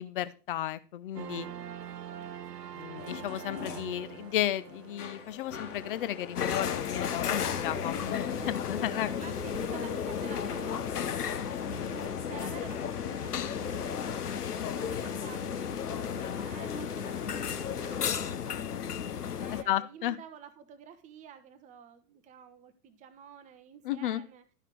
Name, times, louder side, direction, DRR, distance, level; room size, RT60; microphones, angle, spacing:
voice 1, 0.0-1.5 2.7-9.3 19.5-20.2 23.8-24.2, left 12 dB, 35° left, 15 dB, 0.6 m, -33 dB
voice 2, 1.1-3.1 8.4-14.3 14.6-19.0 19.4-24.4, right 8 dB, 15° right, 10 dB, 0.7 m, -50 dB
sound 1, 1.1-9.6, right 9 dB, 80° right, 0.6 m, -46 dB
sound 2, 3.0-18.4, left 4 dB, 50° left, 1.7 m, -43 dB
sound 3, 6.4-19.6, left 8 dB, 70° left, 0.8 m, -34 dB
12.0 x 5.8 x 4.5 m, 0.35 s
figure-of-eight pair, 105°, 48 cm